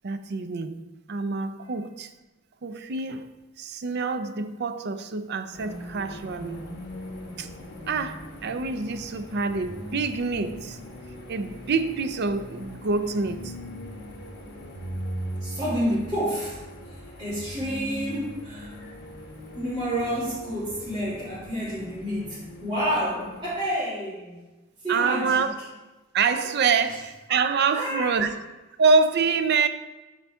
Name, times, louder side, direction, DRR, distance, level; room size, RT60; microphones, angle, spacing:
voice 1, 0.0-0.7 1.1-2.1 2.6-3.3 3.6-6.7 7.4-7.5 7.9-10.8 11.3-13.5 24.9-25.5 26.1-28.3 28.8-29.7, right 4 dB, 50° right, 0.5 m, -26 dB
sound 1, 5.5-23.7, equal, 50° left, 1.4 m, -40 dB
voice 2, 15.4-16.6 17.2-18.7 19.5-24.4 24.8-25.5 27.7-28.3, equal, 20° right, 2.3 m, -29 dB
11.0 x 4.0 x 3.5 m
head